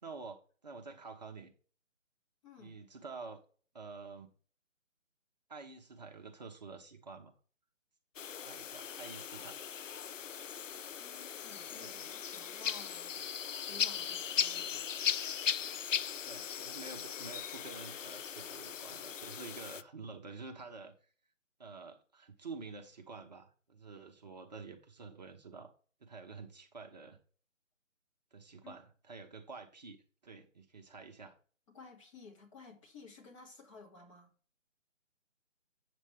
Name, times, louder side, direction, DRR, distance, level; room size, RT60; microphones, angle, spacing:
voice 1, 0.0-1.5 2.6-3.4 3.7-4.3 5.5-7.3 8.4-9.6 11.7-12.1 16.2-21.1 21.6-25.7 26.0-27.2 28.3-30.0 30.2-31.4, right 4 dB, 35° right, 0.9 m, -49 dB
voice 2, 2.4-2.8 11.0-14.9 28.6-28.7 31.7-34.3, left 3 dB, 25° left, 1.9 m, -55 dB
sound 1, 8.2-19.8, left 8 dB, 75° left, 0.5 m, -38 dB
8.4 x 7.3 x 3.4 m
figure-of-eight pair, 155°, 39 cm